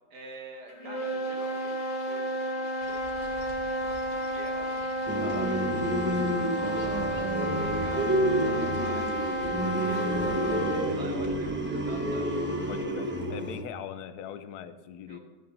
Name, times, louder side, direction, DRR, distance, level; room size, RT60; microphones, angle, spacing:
voice 1, 0.1-4.9 5.4-5.6 7.1-10.1 10.9-12.3 15.1-15.2, right 3 dB, 65° right, 2 dB, 2.4 m, -47 dB
sound 1, 0.7-11.0, right 1 dB, 85° left, 2.4 m, -31 dB
sound 2, 2.8-12.8, left 1 dB, 50° left, 2.9 m, -48 dB
sound 3, 5.1-13.6, right 1 dB, 10° right, 0.9 m, -29 dB
voice 2, 5.2-5.5 12.7-15.2, left 9 dB, 65° left, 11 dB, 1.3 m, -41 dB
14.5 x 8.2 x 5.5 m, 1.3 s
omnidirectional pair, 1.9 m